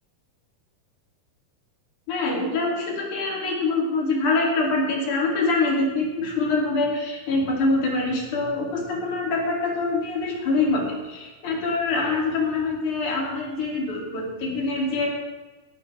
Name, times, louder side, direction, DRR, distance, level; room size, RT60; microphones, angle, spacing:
voice 1, 2.1-15.1, left 3 dB, 55° left, -2 dB, 4.2 m, -25 dB
18.0 x 12.0 x 3.5 m, 1.2 s
omnidirectional pair, 4.4 m